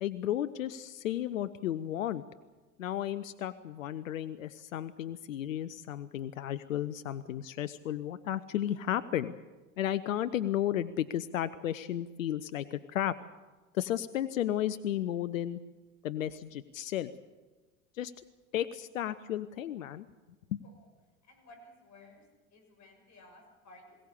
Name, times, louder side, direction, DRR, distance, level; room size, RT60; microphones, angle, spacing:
voice 1, 0.0-2.2 2.8-9.3 9.8-13.2 13.7-15.6 16.0-17.1 17.9-18.1 18.5-20.1 20.5-20.6, left 11 dB, 90° left, 14 dB, 0.7 m, -33 dB
voice 2, 21.2-22.3 22.5-24.0, left 2 dB, 45° left, 3 dB, 7.0 m, -56 dB
22.0 x 17.0 x 8.4 m, 1.3 s
hypercardioid pair, 70°, 39 cm